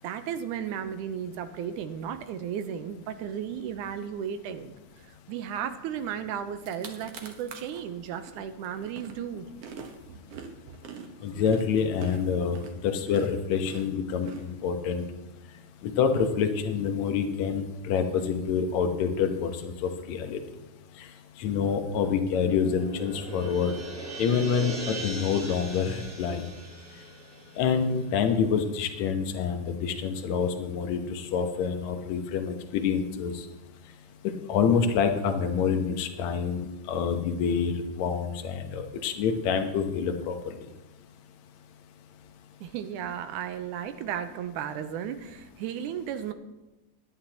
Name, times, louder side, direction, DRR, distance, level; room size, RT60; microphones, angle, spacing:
voice 1, 0.0-9.5 42.6-46.3, right 8 dB, 90° right, 9 dB, 2.2 m, -34 dB
sound 1, 6.2-6.3 6.5-7.8 8.3-15.0, right 6 dB, 60° right, 1.9 m, -44 dB
voice 2, 11.2-12.6 12.8-15.1 15.8-20.4 21.4-23.8 24.2-26.5 27.6-33.5 34.5-40.4, left 6 dB, 70° left, 6 dB, 2.2 m, -27 dB
sound 2, 22.0-28.5, right 2 dB, 45° right, 2.9 m, -40 dB
17.5 x 11.0 x 2.9 m, 1.1 s
omnidirectional pair, 3.5 m